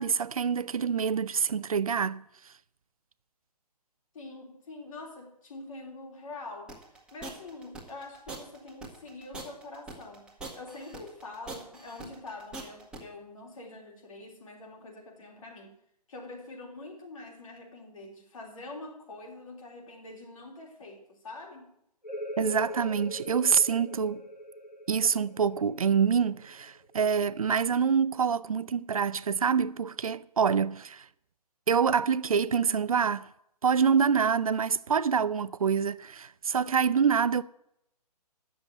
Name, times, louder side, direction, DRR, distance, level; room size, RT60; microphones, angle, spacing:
voice 1, 0.0-2.2 22.4-24.2 24.9-31.1 31.7-33.3 33.6-37.4, right 6 dB, 60° right, 0.4 m, -26 dB
voice 2, 4.1-15.8 16.1-21.7, left 2 dB, 55° left, 3.2 m, -45 dB
sound 1, 6.7-13.0, right 2 dB, 5° right, 1.8 m, -42 dB
sound 2, 22.0-27.4, equal, 90° left, 2.7 m, -42 dB
9.8 x 7.1 x 8.0 m
figure-of-eight pair, 135°, 21 cm